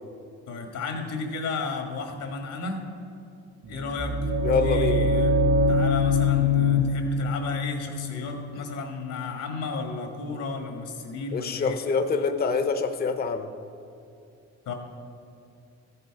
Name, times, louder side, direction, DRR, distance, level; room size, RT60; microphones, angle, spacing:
voice 1, 0.5-2.8 3.7-5.3 5.7-11.8 14.6-14.7, left 4 dB, 80° left, 3 dB, 1.7 m, -33 dB
sound 1, 3.7-9.6, left 2 dB, 55° right, 1.2 m, -24 dB
voice 2, 4.4-5.1 11.3-13.5, left 5 dB, 30° left, 8 dB, 0.7 m, -25 dB
14.0 x 6.7 x 4.8 m, 2.6 s
cardioid pair, 90°, 30 cm